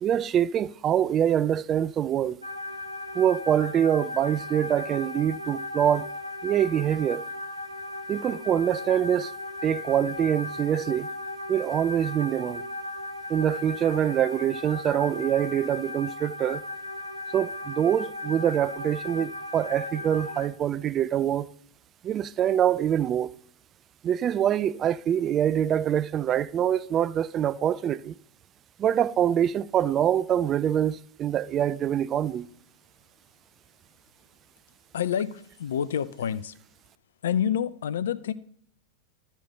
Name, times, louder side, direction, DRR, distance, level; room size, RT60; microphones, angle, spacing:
voice 1, 0.0-2.4 3.1-6.1 6.4-7.3 8.1-9.3 9.6-11.1 11.5-12.6 13.3-16.6 17.3-21.5 22.0-23.3 24.0-28.1 28.8-32.5, right 10 dB, 30° right, 0.3 m, -25 dB
sound 1, 2.4-20.5, left 2 dB, 90° left, 0.7 m, -37 dB
voice 2, 34.9-36.5 37.2-38.3, left 9 dB, 60° left, 0.4 m, -28 dB
12.0 x 4.4 x 5.5 m
figure-of-eight pair, 90°, 0 cm